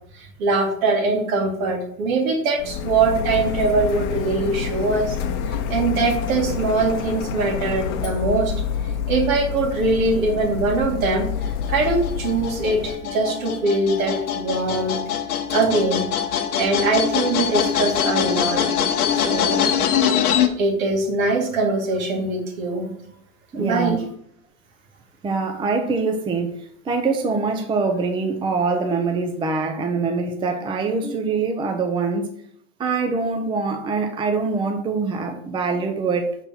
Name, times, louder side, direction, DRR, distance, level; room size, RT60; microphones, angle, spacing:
voice 1, 0.1-5.2 5.5-8.5 9.1-15.0 15.5-16.0 16.6-18.6 19.1-19.7 20.6-22.9 23.5-24.0, right 3 dB, 65° right, 2 dB, 2.2 m, -22 dB
Printer, 2.6-12.9, left 7 dB, 55° left, 0.8 m, -27 dB
sound 1, 11.4-20.5, left 8 dB, 85° left, 1.1 m, -23 dB
voice 2, 23.5-24.0 25.2-32.3 32.8-36.4, right 4 dB, 10° right, 5 dB, 0.5 m, -24 dB
5.6 x 3.9 x 5.8 m, 0.67 s
hypercardioid pair, 120°, 43 cm